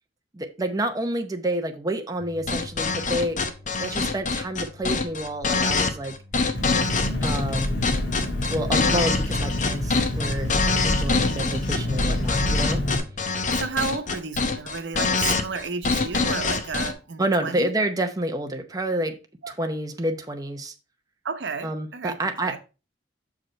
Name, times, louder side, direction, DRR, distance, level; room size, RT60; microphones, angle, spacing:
voice 1, 0.3-3.4 3.8-6.1 7.2-7.9 8.5-10.5 10.8-12.8 17.2-19.2 19.5-20.7 21.6-22.6, right 1 dB, 20° right, 0.8 m, -28 dB
sound 1, 2.2-13.6, left 2 dB, 70° left, 1.1 m, -48 dB
sound 2, 2.5-16.9, left 4 dB, 45° left, 0.9 m, -25 dB
Engine, 6.5-13.0, left 1 dB, 85° left, 2.7 m, -27 dB
voice 2, 13.5-17.7 19.4-19.5 21.2-22.2 22.5-22.6, right 5 dB, 80° right, 0.9 m, -32 dB
6.4 x 4.9 x 4.3 m
head